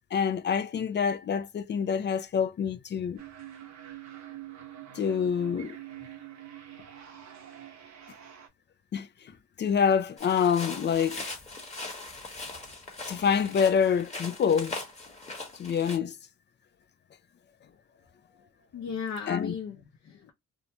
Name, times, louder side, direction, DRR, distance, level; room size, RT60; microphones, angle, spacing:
voice 1, 0.1-3.2 5.0-5.7 8.9-9.1 9.6-11.2 13.1-14.7 15.6-16.1 19.3-19.5, left 7 dB, 35° left, 0.4 m, -26 dB
sound 1, 3.2-8.5, right 12 dB, 70° right, 0.9 m, -45 dB
sound 2, 10.2-16.0, left 2 dB, 20° left, 1.1 m, -40 dB
voice 2, 18.7-20.3, left 6 dB, 60° left, 0.8 m, -36 dB
2.7 x 2.2 x 2.8 m
cardioid pair, 90°, 30 cm